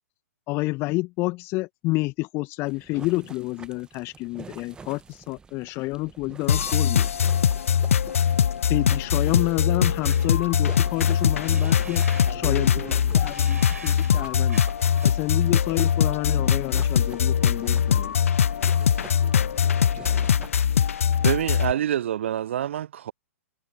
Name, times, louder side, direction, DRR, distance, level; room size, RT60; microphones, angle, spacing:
voice 1, 0.5-7.1 8.6-12.0 12.3-14.6 15.0-18.1, left 22 dB, 30° left, 1.4 m, -29 dB
sound 1, 2.6-20.5, right 5 dB, 10° right, 1.0 m, -47 dB
sound 2, 6.5-21.7, left 8 dB, 60° left, 0.6 m, -22 dB
sound 3, 10.0-15.1, right 3 dB, 80° right, 3.8 m, -44 dB
voice 2, 12.3-13.5 18.8-20.0, right 22 dB, 30° right, 4.7 m, -43 dB
voice 3, 21.2-23.1, right 10 dB, 50° right, 0.5 m, -27 dB
figure-of-eight pair, 115°, 8 cm